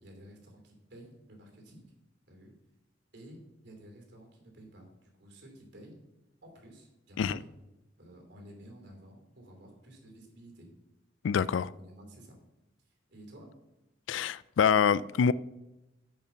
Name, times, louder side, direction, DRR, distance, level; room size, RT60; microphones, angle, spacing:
voice 1, 0.0-1.9 2.3-2.5 3.1-6.0 6.4-7.4 8.0-10.8 11.5-12.4 12.8-13.5, right 1 dB, 65° right, 3.0 m, -52 dB
voice 2, 11.2-11.7 14.1-15.3, left 7 dB, 75° left, 0.3 m, -26 dB
8.8 x 5.7 x 7.0 m
head